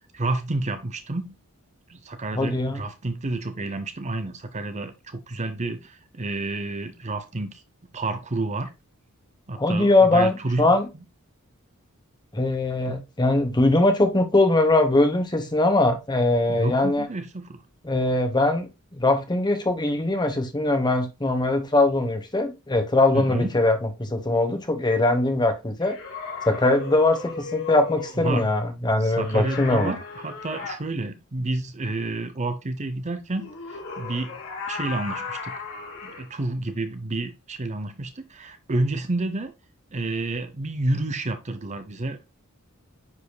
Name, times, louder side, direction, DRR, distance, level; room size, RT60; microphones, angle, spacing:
voice 1, 0.1-1.4 1.9-7.6 7.9-8.7 9.5-10.7 12.9-13.0 16.5-17.6 23.1-23.5 28.2-28.5 29.0-34.4 34.7-35.6 36.0-39.5 39.9-42.2, right 2 dB, 35° right, 0.7 m, -30 dB
voice 2, 2.3-2.8 9.6-10.9 12.3-17.1 17.8-26.0 26.4-29.9, left 2 dB, 20° left, 1.2 m, -21 dB
sound 1, 25.8-28.2 29.2-30.8 33.3-36.3, left 4 dB, 85° left, 3.7 m, -36 dB
9.6 x 5.0 x 2.3 m
head